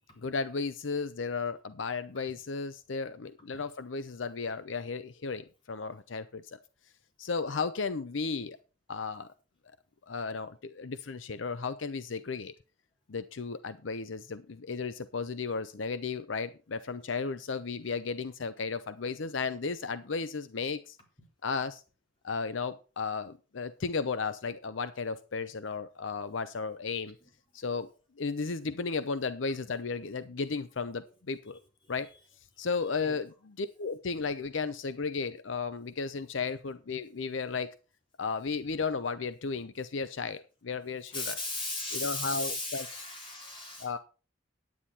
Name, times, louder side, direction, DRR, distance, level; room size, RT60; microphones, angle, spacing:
voice 1, 0.2-6.6 7.2-8.6 8.9-9.3 10.0-12.5 13.1-21.0 21.4-21.8 22.2-27.2 27.5-27.9 28.2-31.6 31.9-32.1 32.6-37.7 38.2-41.4 41.9-43.1 43.8-44.0, left 4 dB, 80° left, 0.7 m, -34 dB
voice 2, 41.1-43.9, left 2 dB, 25° left, 3.7 m, -36 dB
10.0 x 9.6 x 4.3 m
head